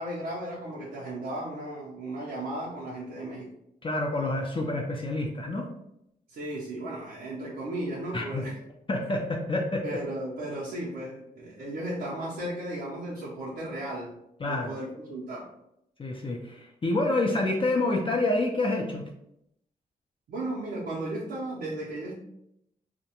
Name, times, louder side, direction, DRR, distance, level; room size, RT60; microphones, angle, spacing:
voice 1, 0.0-3.5 6.3-8.5 9.8-14.1 14.4-15.5 20.3-22.2, right 1 dB, 85° right, -6 dB, 0.5 m, -35 dB
voice 2, 3.8-5.7 8.1-8.5 8.9-9.8 14.4-14.7 16.0-19.0, left 2 dB, 35° left, 0 dB, 0.4 m, -28 dB
2.3 x 2.1 x 2.8 m, 0.79 s
cardioid pair, 55°, 16 cm